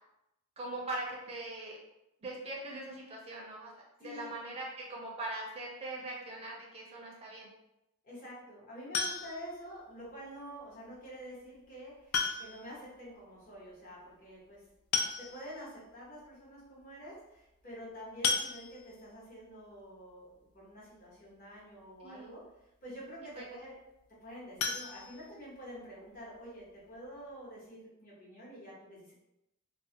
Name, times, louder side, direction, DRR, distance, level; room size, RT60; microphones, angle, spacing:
voice 1, 0.6-1.8 2.2-3.7 4.0-7.5 22.0-22.3 23.4-23.5, right 2 dB, 30° right, -3 dB, 0.4 m, -41 dB
voice 2, 4.0-4.3 8.0-14.7 15.2-22.4 22.8-23.8 24.1-29.1, equal, 40° left, -6 dB, 0.9 m, -48 dB
sound 1, 8.9-9.6 11.1-11.2 12.1-12.7 13.0-13.1 13.4-13.5 14.5-14.6 14.9-15.6 16.2-16.3 16.6-16.8 18.2-19.1 24.6-25.8 26.1-26.2 26.7-26.8 27.1-27.2, left 5 dB, 70° left, 0.3 m, -34 dB
2.3 x 2.0 x 2.7 m, 0.88 s
head